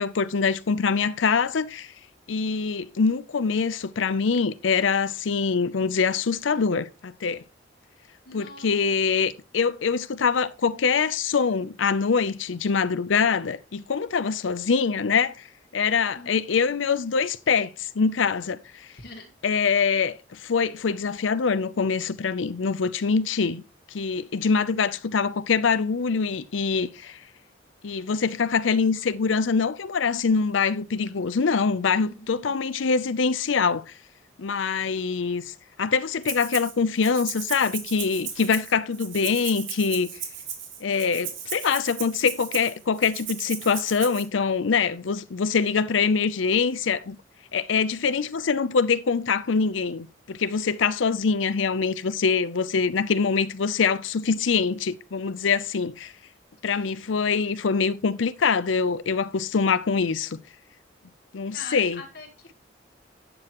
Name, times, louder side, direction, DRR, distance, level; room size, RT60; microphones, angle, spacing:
voice 1, 0.0-1.9 2.3-7.4 8.3-15.5 15.7-18.9 19.4-23.6 23.9-27.2 27.8-33.8 34.4-40.1 40.8-47.2 47.5-56.1 56.6-60.4 61.3-62.0, left 5 dB, 90° left, 0.6 m, -24 dB
voice 2, 8.3-8.7 16.1-16.3 18.9-19.3 32.1-32.3 56.7-57.0 61.5-62.5, left 3 dB, 60° left, 1.4 m, -43 dB
Rattle (instrument), 36.2-36.7 37.0-44.2, right 8 dB, 90° right, 2.4 m, -36 dB
12.0 x 7.9 x 3.0 m
head